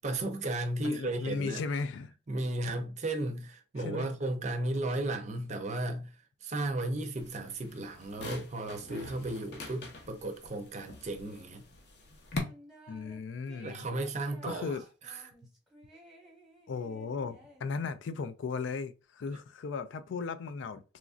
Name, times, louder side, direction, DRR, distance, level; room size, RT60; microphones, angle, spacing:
voice 1, 0.0-1.6 2.3-11.6 13.6-14.8 15.0-15.2, right 2 dB, 40° right, 0.5 m, -34 dB
voice 2, 0.8-2.1 3.8-4.1 12.9-13.8 14.5-14.8 16.7-20.8, left 4 dB, 85° left, 0.4 m, -36 dB
sound 1, 7.2-12.4, left 2 dB, 60° left, 0.7 m, -44 dB
sound 2, 12.3-13.2 13.5-18.1, right 1 dB, ahead, 1.0 m, -55 dB
3.1 x 2.4 x 2.4 m
head